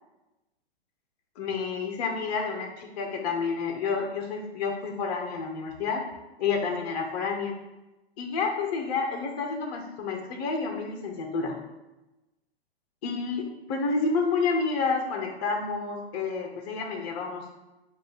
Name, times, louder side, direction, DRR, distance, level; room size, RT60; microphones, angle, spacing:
voice 1, 1.4-6.0 6.4-7.5 8.2-11.6 13.0-13.4 13.7-17.5, left 4 dB, 40° left, 3 dB, 0.8 m, -29 dB
4.8 x 2.5 x 3.9 m, 1.0 s
hypercardioid pair, 115°, 32 cm